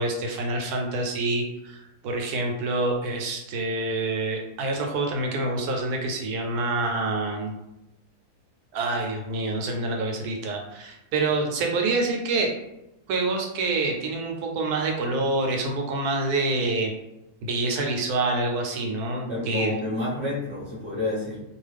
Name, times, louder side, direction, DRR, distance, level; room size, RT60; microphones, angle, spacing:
voice 1, 0.0-7.5 8.7-12.5 13.1-16.9 17.4-19.7, right 2 dB, 80° right, 1 dB, 1.1 m, -27 dB
voice 2, 19.3-21.4, left 2 dB, 10° left, -8 dB, 0.6 m, -29 dB
2.5 x 2.4 x 3.3 m, 0.92 s
omnidirectional pair, 1.6 m